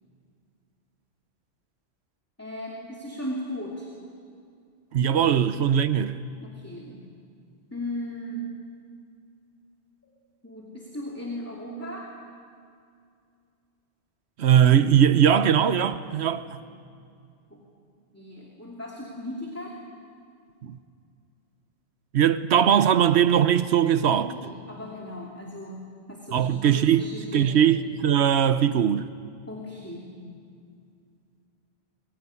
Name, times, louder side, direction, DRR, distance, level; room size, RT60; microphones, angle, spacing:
voice 1, 2.4-3.9 6.4-7.0 7.7-8.5 10.4-12.1 17.5-17.6 18.1-19.7 24.2-27.5 29.5-30.1, equal, 15° left, 2.8 m, -37 dB
voice 2, 4.9-6.2 14.4-16.6 20.6-20.8 22.1-24.3 26.3-27.0 27.3-29.1, right 9 dB, 90° right, 1.1 m, -20 dB
23.0 x 21.5 x 9.8 m
omnidirectional pair, 1.1 m